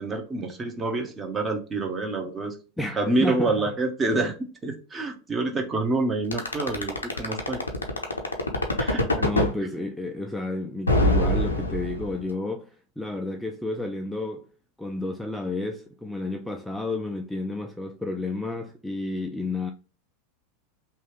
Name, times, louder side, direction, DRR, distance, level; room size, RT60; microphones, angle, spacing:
voice 1, 0.0-2.5 3.0-4.3 4.6-7.6 8.8-9.4, right 2 dB, 25° right, 0.9 m, -27 dB
voice 2, 2.8-3.7 9.2-14.5 14.8-19.7, left 2 dB, ahead, 0.4 m, -31 dB
sound 1, 6.3-9.5 10.9-12.3, left 1 dB, 90° left, 0.6 m, -23 dB
2.9 x 2.3 x 3.0 m
figure-of-eight pair, 85°, 0 cm